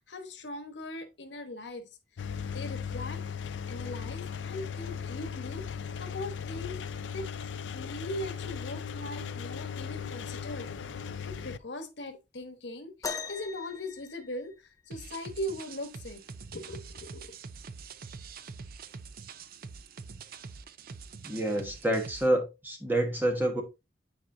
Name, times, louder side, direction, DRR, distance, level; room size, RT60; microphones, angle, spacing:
voice 1, 0.1-1.8 2.5-3.2 3.7-6.8 7.1-7.3 7.7-14.5 14.9-16.2 16.5-17.3, left 1 dB, 70° left, 1.2 m, -40 dB
Engine, 2.2-11.6, left 7 dB, 90° left, 0.4 m, -37 dB
sound 1, 13.0-14.9 16.6-16.7 17.5-17.7 18.6-18.7, left 5 dB, 20° left, 0.5 m, -40 dB
sound 2, 14.9-22.3, right 5 dB, 55° right, 0.5 m, -45 dB
voice 2, 21.2-23.6, right 1 dB, 10° right, 1.3 m, -28 dB
9.5 x 4.5 x 2.6 m
head